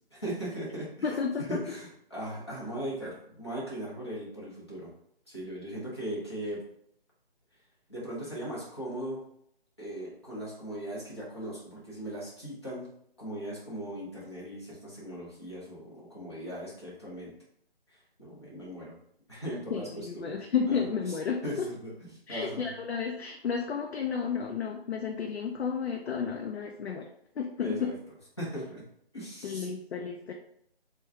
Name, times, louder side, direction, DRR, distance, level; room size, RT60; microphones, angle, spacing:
voice 1, 0.0-0.9 1.5-4.9 5.3-6.6 7.9-9.2 9.8-12.9 13.2-17.3 17.9-19.0 19.3-20.4 20.7-20.8 21.4-21.9 22.3-22.7 27.6-27.9 28.4-28.8 29.1-29.7, right 1 dB, 25° left, -7 dB, 0.9 m, -38 dB
voice 2, 1.0-1.6 19.7-21.7 22.3-27.1 27.4-27.9 29.4-30.3, left 6 dB, 85° left, 2 dB, 0.5 m, -32 dB
3.1 x 2.3 x 3.4 m, 0.71 s
hypercardioid pair, 180°, 31 cm